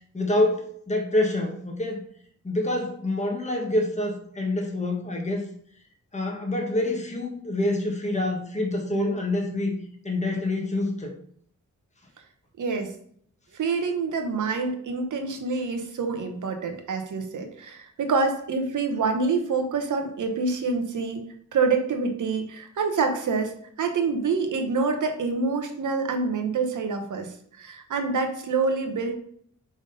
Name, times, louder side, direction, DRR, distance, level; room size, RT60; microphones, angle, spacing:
voice 1, 0.1-2.0 2.4-5.5 6.1-9.7 10.0-11.1, left 1 dB, 25° left, 1 dB, 1.5 m, -26 dB
voice 2, 12.6-12.9 13.6-21.3 21.5-23.5 23.8-29.1, right 4 dB, 90° right, 5 dB, 1.0 m, -26 dB
5.2 x 3.6 x 5.3 m, 0.63 s
cardioid pair, 60°, 30 cm